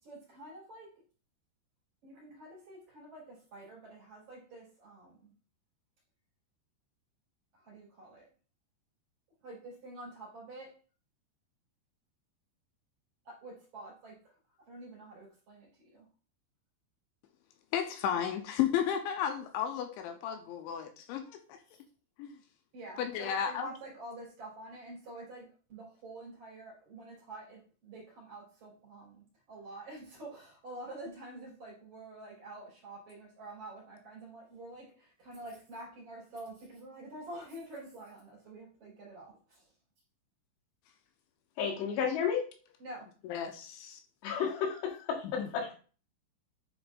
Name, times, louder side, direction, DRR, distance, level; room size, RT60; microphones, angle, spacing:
voice 1, 0.0-1.0 2.0-5.3 7.5-8.3 9.4-10.8 13.2-14.4 14.7-16.0 22.7-39.7 42.8-43.1, right 2 dB, 40° right, -5 dB, 4.4 m, -48 dB
voice 2, 17.7-21.6 22.2-22.4 23.0-23.7 43.3-44.0 45.4-45.5, left 9 dB, 85° left, 5 dB, 2.7 m, -33 dB
voice 3, 41.6-42.4 44.2-45.7, left 7 dB, 65° left, 0 dB, 3.2 m, -32 dB
10.0 x 5.1 x 2.5 m, 0.37 s
omnidirectional pair, 5.8 m